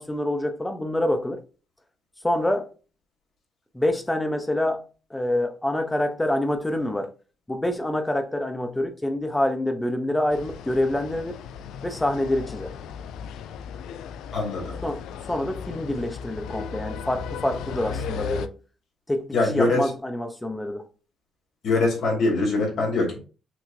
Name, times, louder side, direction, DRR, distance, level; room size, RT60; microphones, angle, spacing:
voice 1, 0.0-1.4 2.2-2.7 3.7-4.8 5.1-7.1 7.5-11.4 11.8-12.7 14.8-18.5 19.1-19.3 19.5-20.8, left 1 dB, 10° left, 0.8 m, -26 dB
sound 1, 10.3-18.5, left 6 dB, 85° left, 0.3 m, -36 dB
voice 2, 14.3-14.8 19.3-19.9 21.6-23.2, left 2 dB, 65° left, 2.1 m, -23 dB
6.1 x 2.8 x 2.6 m
cardioid pair, 90°, 0 cm